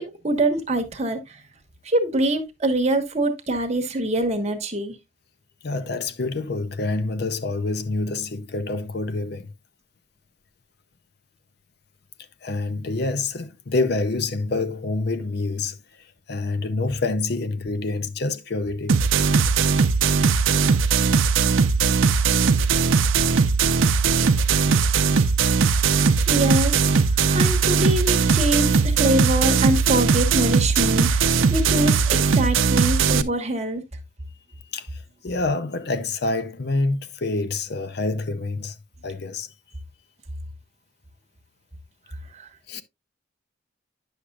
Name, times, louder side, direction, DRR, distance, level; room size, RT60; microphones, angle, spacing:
voice 1, 0.0-1.4 1.8-5.0 25.9-26.8 27.3-31.2 31.5-33.8 42.3-42.4, right 1 dB, 35° right, 1.2 m, -24 dB
voice 2, 5.6-9.5 12.4-15.8 16.3-19.0 34.7-38.8 39.0-39.5 42.7-42.8, left 3 dB, 55° left, 0.6 m, -27 dB
sound 1, 18.9-33.2, right 5 dB, 85° right, 0.6 m, -19 dB
9.9 x 6.4 x 2.3 m
head